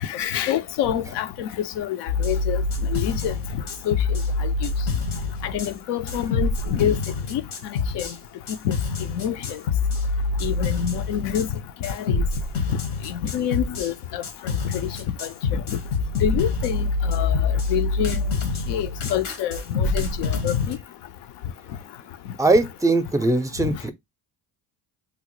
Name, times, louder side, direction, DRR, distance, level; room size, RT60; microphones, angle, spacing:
voice 1, 0.0-1.5 1.8-2.6 2.9-3.3 3.9-4.0 4.4-4.5 5.4-7.0 7.3-8.1 8.6-8.7 9.1-9.6 10.4-12.2 13.1-14.2 14.7-14.9 15.2-15.8 16.2-18.2 18.7-20.8 23.6-23.8, left 10 dB, 70° left, 0.6 m, -27 dB
sound 1, 2.1-5.7 6.1-8.1 8.5-11.5 11.8-13.9 14.2-20.7, left 3 dB, 85° left, 1.2 m, -26 dB
voice 2, 22.4-23.9, right 2 dB, 10° right, 0.5 m, -20 dB
3.8 x 2.0 x 3.0 m
supercardioid pair, 65°, 44 cm